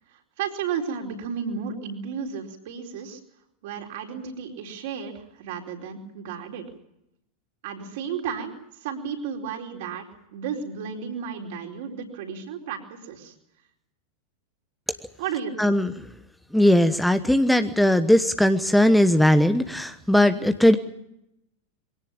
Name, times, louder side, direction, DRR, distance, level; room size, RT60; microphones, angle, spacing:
voice 1, 0.1-3.2 3.6-6.7 7.6-13.3 15.2-15.8, right 7 dB, 50° right, 3 dB, 4.4 m, -33 dB
voice 2, 15.6-15.9 16.5-20.8, left 1 dB, ahead, 10 dB, 1.1 m, -19 dB
23.5 x 17.5 x 8.9 m, 0.83 s
figure-of-eight pair, 90°, 0 cm